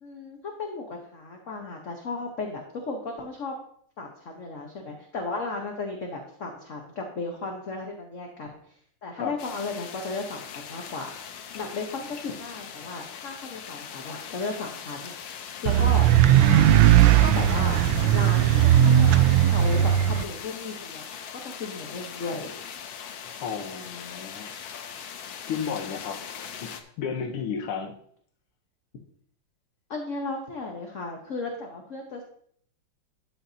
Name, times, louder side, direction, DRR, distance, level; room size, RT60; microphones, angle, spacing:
voice 1, 0.0-3.5 4.0-8.7 9.0-11.1 11.5-15.1 15.6-16.1 16.4-16.7 17.2-17.8 18.1-22.5 29.9-32.2, left 3 dB, 45° left, 1 dB, 1.2 m, -35 dB
sound 1, 9.4-26.8, left 7 dB, 65° left, 1.5 m, -40 dB
sound 2, 15.7-20.2, right 11 dB, 75° right, 1.3 m, -18 dB
voice 2, 23.4-24.5 25.5-27.9, left 6 dB, 90° left, 5 dB, 1.9 m, -33 dB
12.0 x 8.0 x 2.8 m, 0.62 s
omnidirectional pair, 2.3 m